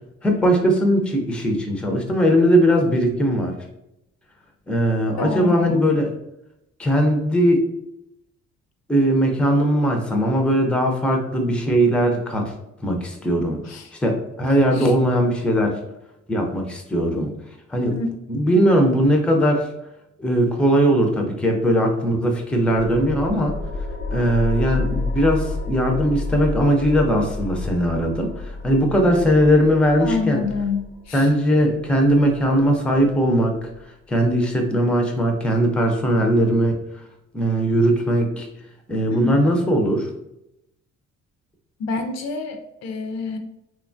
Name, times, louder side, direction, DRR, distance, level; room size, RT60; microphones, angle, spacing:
voice 1, 0.2-3.5 4.7-6.1 6.8-7.6 8.9-12.5 12.8-13.6 14.0-15.8 16.3-17.3 17.7-17.9 18.3-19.7 20.2-23.5 24.1-30.4 31.1-33.7 34.1-36.8 37.3-38.5 38.9-40.1, equal, 5° left, 3 dB, 0.4 m, -19 dB
voice 2, 5.2-5.8 13.7-13.9 14.7-14.9 17.9-18.1 30.0-31.3 39.1-39.3 41.8-43.4, left 4 dB, 60° left, 6 dB, 0.5 m, -27 dB
sound 1, 22.7-33.8, left 2 dB, 90° left, 0.8 m, -30 dB
3.0 x 2.2 x 2.5 m, 0.85 s
cardioid pair, 90°, 30 cm